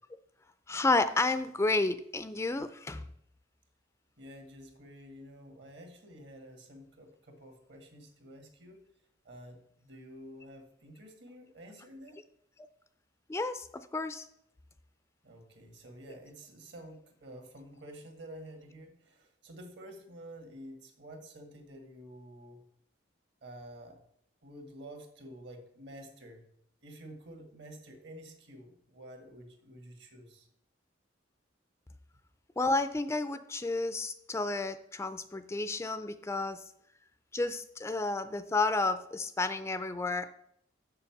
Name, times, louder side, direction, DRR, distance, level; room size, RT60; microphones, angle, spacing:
voice 1, 0.7-3.1 13.3-14.3 16.1-16.2 32.6-36.6 37.3-40.3, left 3 dB, 15° left, 11 dB, 0.3 m, -31 dB
voice 2, 4.2-8.8 9.3-12.2 15.2-22.6 23.4-24.0 24.4-26.4 26.8-30.5, right 1 dB, 65° right, 5 dB, 1.8 m, -50 dB
7.2 x 6.8 x 5.9 m, 0.73 s
head